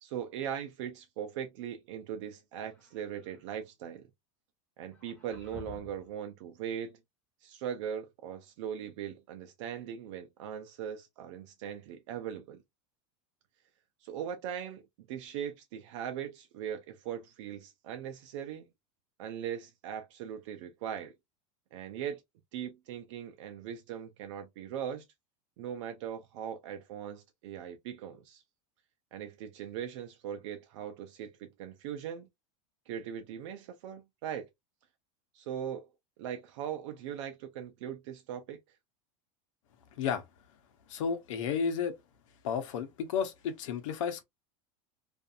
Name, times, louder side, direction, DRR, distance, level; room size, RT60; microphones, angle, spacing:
voice 1, 0.0-4.1 4.8-7.0 7.4-12.6 14.0-18.7 19.2-21.1 21.7-22.2 22.5-25.1 25.6-28.4 29.1-32.3 32.9-34.5 35.3-35.9 36.2-38.6, right 9 dB, 70° right, 0.5 m, -40 dB
sound 1, 2.6-3.5 4.9-6.1, left 5 dB, 10° left, 1.3 m, -51 dB
voice 2, 40.9-42.0 42.4-44.2, left 7 dB, 80° left, 0.8 m, -32 dB
2.6 x 2.5 x 2.4 m
supercardioid pair, 145°, 16 cm